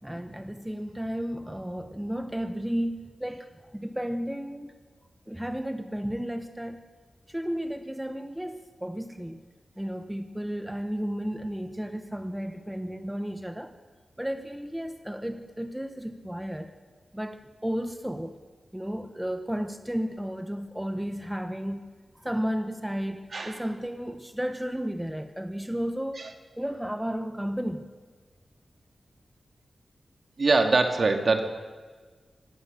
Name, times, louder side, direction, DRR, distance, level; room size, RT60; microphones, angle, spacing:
voice 1, 0.0-4.7 5.3-6.9 7.3-9.4 9.8-13.7 14.2-16.7 17.1-18.4 18.7-27.9, equal, 5° right, 7 dB, 1.2 m, -33 dB
voice 2, 23.3-23.6 26.2-26.3 30.4-31.4, right 3 dB, 55° right, 5 dB, 2.4 m, -23 dB
24.5 x 19.0 x 6.8 m, 1.5 s
wide cardioid pair, 95°, 0 cm